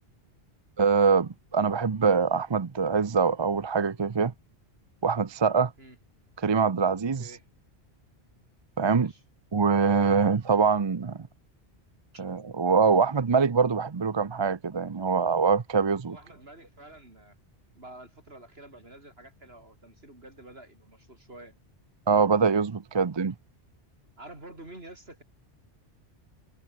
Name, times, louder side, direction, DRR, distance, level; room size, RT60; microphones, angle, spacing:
voice 1, 0.8-4.3 5.0-5.7 6.4-7.2 8.8-9.1 9.5-11.2 12.2-16.2 22.1-23.3, right 5 dB, 30° right, 0.6 m, -24 dB
voice 2, 8.9-9.2 12.1-12.2 16.0-17.4 17.7-21.5 24.2-25.2, right 1 dB, 65° right, 6.1 m, -48 dB
omnidirectional pair, 1.1 m